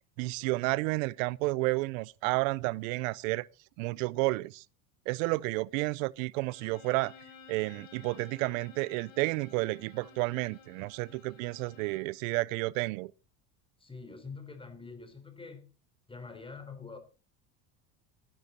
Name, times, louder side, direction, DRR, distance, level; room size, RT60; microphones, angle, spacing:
voice 1, 0.2-3.5 3.8-4.6 5.1-7.1 7.5-13.1, right 23 dB, 80° right, 0.5 m, -31 dB
Bowed string instrument, 6.4-12.2, left 5 dB, 85° left, 4.8 m, -54 dB
voice 2, 13.8-15.7 16.1-17.0, left 4 dB, 15° left, 3.8 m, -45 dB
13.5 x 10.5 x 4.1 m
supercardioid pair, 100°, 39 cm